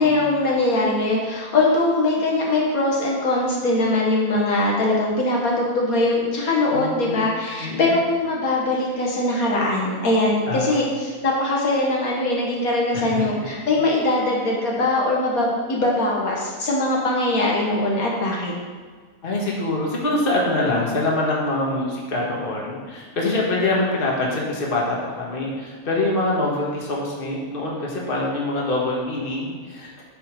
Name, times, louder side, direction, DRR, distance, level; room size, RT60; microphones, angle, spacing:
voice 1, 0.0-18.5, left 2 dB, 75° left, -3 dB, 1.9 m, -21 dB
voice 2, 6.7-7.3 7.6-8.0 10.5-10.7 13.1-13.2 19.2-30.0, left 2 dB, 40° left, -3 dB, 1.7 m, -24 dB
8.8 x 5.6 x 5.1 m, 1.5 s
omnidirectional pair, 1.5 m